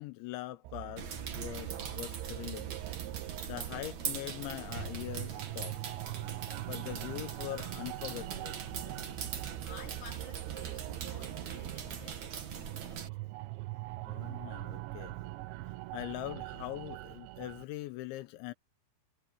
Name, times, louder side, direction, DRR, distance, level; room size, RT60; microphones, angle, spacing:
voice 1, 0.0-2.7 3.4-5.8 6.6-8.6 14.1-15.1 15.9-18.5, left 16 dB, 85° left, 3.2 m, -42 dB
sound 1, 0.6-17.6, right 18 dB, 85° right, 3.1 m, -42 dB
sound 2, 1.0-13.1, right 7 dB, 45° right, 3.0 m, -42 dB
voice 2, 3.1-3.6 6.1-6.7 9.4-13.5, left 6 dB, 35° left, 4.1 m, -56 dB
omnidirectional pair, 5.3 m